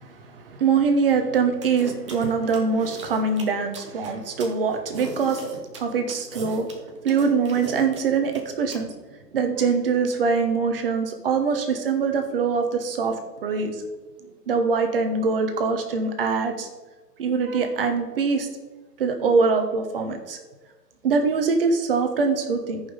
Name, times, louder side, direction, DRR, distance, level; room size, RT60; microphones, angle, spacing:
voice 1, 0.0-5.4 5.7-6.7 7.0-8.9 9.3-13.2 13.4-13.7 14.5-16.7 17.2-18.5 19.0-20.4 21.0-22.8, right 5 dB, 35° right, 6 dB, 1.0 m, -23 dB
sound 1, 1.6-8.8, right 3 dB, 20° right, 0.6 m, -37 dB
14.0 x 5.4 x 3.9 m, 1.3 s
figure-of-eight pair, 135°, 49 cm